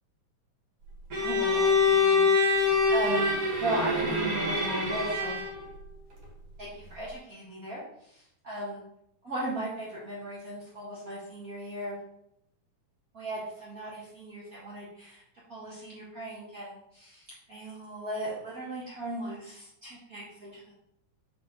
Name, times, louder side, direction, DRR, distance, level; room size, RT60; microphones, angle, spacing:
voice 1, 1.1-3.3 3.6-5.3 6.6-8.8 9.2-12.0 13.1-15.2 15.5-20.7, right 1 dB, 40° right, -7 dB, 1.6 m, -37 dB
Bowed string instrument, 1.1-5.6, left 3 dB, 55° right, 3.0 m, -25 dB
8.1 x 4.4 x 4.2 m, 0.78 s
omnidirectional pair, 3.3 m